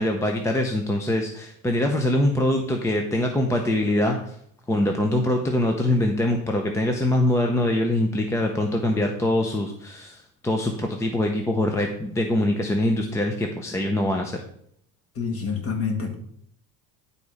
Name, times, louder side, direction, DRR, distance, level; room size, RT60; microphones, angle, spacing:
voice 1, 0.0-4.3 4.7-14.4, left 1 dB, 5° left, 2 dB, 0.5 m, -23 dB
voice 2, 15.2-16.1, left 5 dB, 35° left, 2 dB, 2.0 m, -27 dB
10.5 x 4.1 x 4.8 m, 0.67 s
cardioid pair, 145°, 42 cm